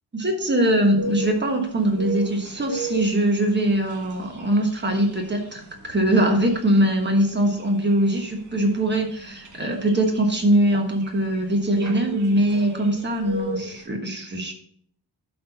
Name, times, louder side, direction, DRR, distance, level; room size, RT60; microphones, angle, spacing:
voice 1, 0.1-14.5, right 1 dB, 25° right, 3 dB, 1.3 m, -22 dB
sound 1, 1.0-13.8, right 1 dB, 45° right, 1.3 m, -36 dB
11.0 x 4.5 x 4.0 m, 0.64 s
wide cardioid pair, 180°, 41 cm